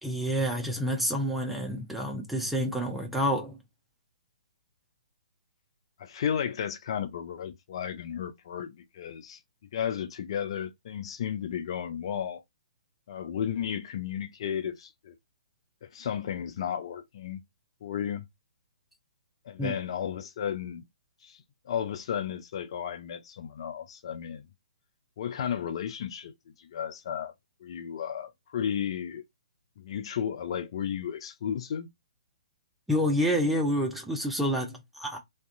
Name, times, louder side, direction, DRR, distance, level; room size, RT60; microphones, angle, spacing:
voice 1, 0.0-3.6 19.6-19.8 32.9-35.2, equal, ahead, 0.6 m, -28 dB
voice 2, 6.0-9.4 9.7-12.4 13.1-15.2 15.9-17.4 17.8-18.2 19.5-20.8 21.2-24.5 25.2-26.3 26.6-27.3 27.6-29.2 29.8-31.9, left 8 dB, 45° left, 0.4 m, -33 dB
2.5 x 2.3 x 2.5 m
figure-of-eight pair, 130°, 4 cm